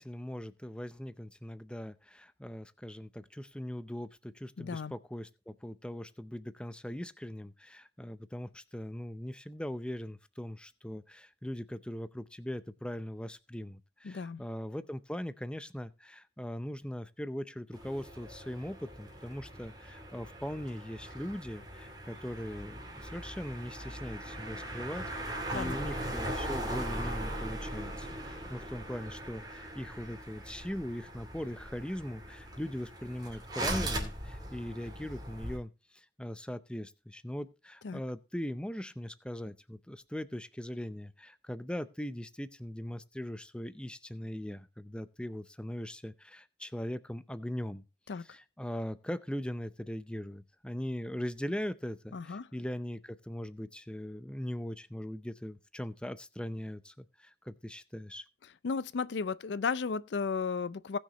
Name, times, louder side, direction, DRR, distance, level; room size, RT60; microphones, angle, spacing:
voice 1, 0.0-47.8 48.2-58.2, equal, 5° left, 0.6 m, -40 dB
voice 2, 4.6-4.9 14.0-14.4 25.5-25.8 37.8-38.0 48.1-48.2 52.1-52.5 58.6-61.0, left 5 dB, 70° left, 0.5 m, -34 dB
sound 1, 17.7-35.6, right 1 dB, 25° right, 2.8 m, -40 dB
19.0 x 6.5 x 3.0 m
head